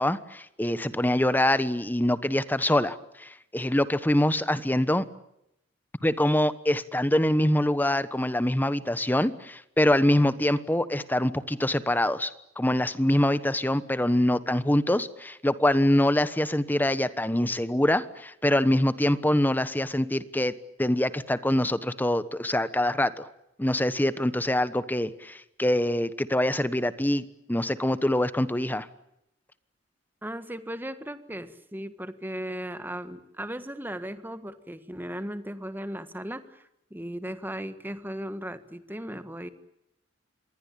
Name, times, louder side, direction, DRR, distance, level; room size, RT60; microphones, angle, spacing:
voice 1, 0.0-5.0 6.0-12.3 12.6-23.3 23.6-28.9, left 1 dB, 10° left, 14 dB, 1.1 m, -24 dB
voice 2, 30.2-36.6 36.9-39.5, equal, 10° right, 11 dB, 1.6 m, -36 dB
27.0 x 21.0 x 8.7 m, 0.80 s
head